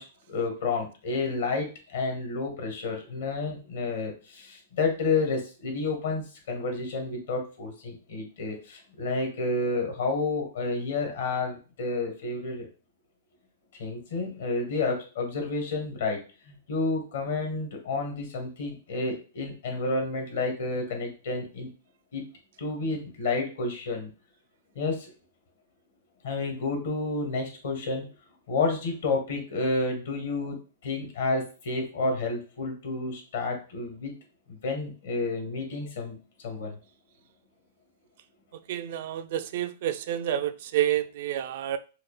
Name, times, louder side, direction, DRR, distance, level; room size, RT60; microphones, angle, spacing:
voice 1, 0.0-12.7 13.8-21.7 22.1-22.3 22.6-24.1 24.7-25.1 26.2-28.1 28.5-34.2 34.5-36.2 36.4-36.8, left 3 dB, 75° left, 1.5 m, -30 dB
voice 2, 38.7-41.8, right 11 dB, 60° right, 0.4 m, -29 dB
4.8 x 2.0 x 3.1 m
hypercardioid pair, 120°, 0 cm